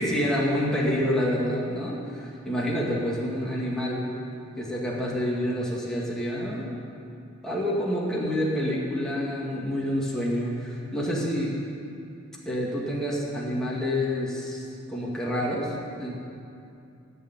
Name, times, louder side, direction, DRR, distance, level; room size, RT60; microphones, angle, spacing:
voice 1, 0.0-4.1 4.6-6.7 7.4-11.6 12.5-16.2, equal, 5° left, -6 dB, 2.1 m, -28 dB
16.0 x 6.8 x 9.6 m, 2.6 s
head